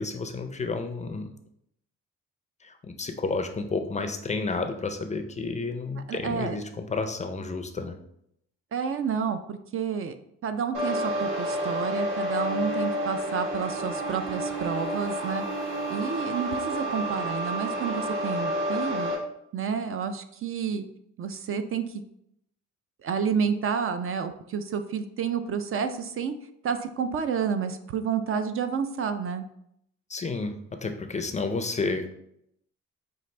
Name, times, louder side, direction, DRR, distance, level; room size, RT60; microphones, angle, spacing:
voice 1, 0.0-1.3 2.6-8.0 30.1-32.1, left 3 dB, 25° left, 6 dB, 0.4 m, -31 dB
voice 2, 6.1-6.6 8.7-10.1 10.4-15.4 15.9-19.1 19.5-20.9 21.2-21.8 23.0-26.3 26.6-29.4, right 6 dB, 45° right, 9 dB, 0.4 m, -30 dB
sound 1, 10.7-19.1, equal, 80° right, 1.5 m, -30 dB
5.4 x 2.5 x 3.2 m, 0.75 s
cardioid pair, 90°, 30 cm